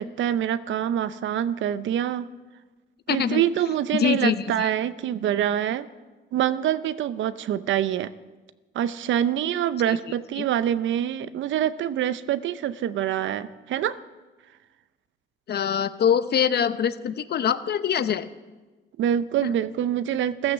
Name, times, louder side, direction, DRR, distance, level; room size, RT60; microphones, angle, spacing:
voice 1, 0.0-2.3 3.1-5.9 6.3-8.1 8.7-14.0 19.0-20.5, right 10 dB, 75° right, 15 dB, 0.7 m, -25 dB
voice 2, 3.1-3.4 3.9-4.7 9.9-10.0 10.4-10.5 15.5-18.3 19.4-19.5, left 8 dB, 55° left, 13 dB, 0.8 m, -24 dB
14.5 x 12.5 x 7.3 m, 1.2 s
cardioid pair, 90°, 20 cm